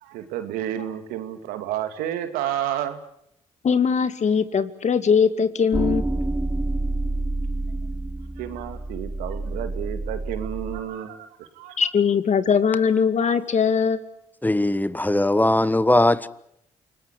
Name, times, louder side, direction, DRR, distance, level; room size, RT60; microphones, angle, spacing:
voice 1, 0.0-3.0 8.4-11.8 13.2-13.3, right 11 dB, 85° right, 2.6 m, -31 dB
voice 2, 3.6-6.1 11.8-14.1, left 6 dB, 50° left, 2.3 m, -21 dB
sound 1, 5.7-10.8, right 2 dB, 10° right, 2.4 m, -28 dB
voice 3, 14.4-16.3, left 1 dB, 10° left, 1.4 m, -20 dB
29.0 x 19.5 x 8.5 m
hypercardioid pair, 50°, 15 cm